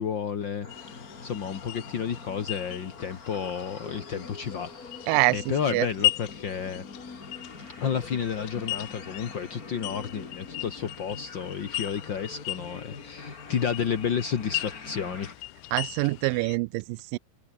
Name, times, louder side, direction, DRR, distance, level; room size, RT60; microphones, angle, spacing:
voice 1, 0.0-5.0 5.3-6.9 7.8-15.3, left 7 dB, 55° left, 1.3 m, -31 dB
sound 1, 0.6-15.4, left 4 dB, 25° left, 2.6 m, -44 dB
sound 2, 0.7-16.6, left 17 dB, 80° left, 1.9 m, -37 dB
voice 2, 15.7-17.2, right 24 dB, 90° right, 1.9 m, -25 dB
omnidirectional pair, 4.5 m